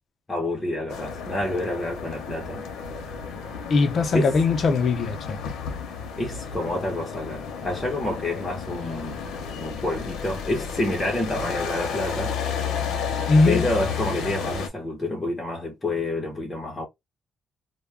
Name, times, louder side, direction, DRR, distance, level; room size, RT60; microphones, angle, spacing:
voice 1, 0.3-2.7 4.1-4.4 6.2-9.2 9.6-12.4 13.4-16.9, left 1 dB, 20° left, 0.8 m, -28 dB
sound 1, 0.9-14.7, left 6 dB, 90° left, 0.7 m, -32 dB
voice 2, 3.7-5.4 13.3-13.6, left 3 dB, 50° left, 0.5 m, -20 dB
2.2 x 2.2 x 3.2 m
cardioid pair, 115°, 0 cm